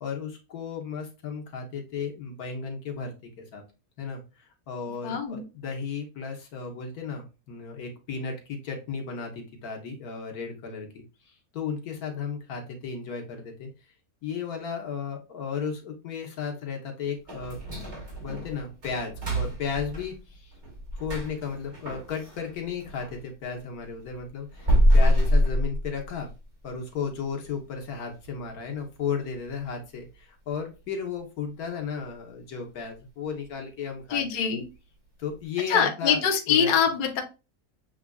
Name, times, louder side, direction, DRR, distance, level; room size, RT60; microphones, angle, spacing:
voice 1, 0.0-3.6 4.0-13.7 14.2-17.6 18.2-20.5 21.0-26.3 26.6-34.2 35.2-36.2 36.5-36.7, left 6 dB, 85° left, 2 dB, 1.5 m, -34 dB
voice 2, 5.0-5.4 34.1-34.6 35.7-37.2, left 7 dB, 45° left, 2 dB, 0.7 m, -24 dB
sound 1, 17.3-23.2 23.6-26.4 26.8-26.9 27.4-27.5 28.0-28.3 28.7-28.8 29.3-29.4, equal, 50° right, 2.3 m, -26 dB
7.1 x 2.4 x 2.3 m, 0.29 s
omnidirectional pair, 1.5 m